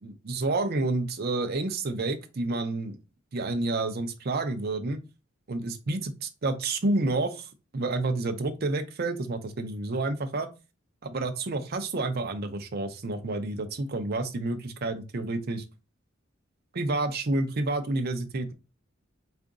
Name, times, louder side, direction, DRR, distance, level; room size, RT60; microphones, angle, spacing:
voice 1, 0.0-3.0 3.3-5.0 5.5-6.1 6.4-10.5 11.0-15.6 16.7-18.5, right 2 dB, 50° right, 0.6 m, -29 dB
3.7 x 2.5 x 3.6 m
head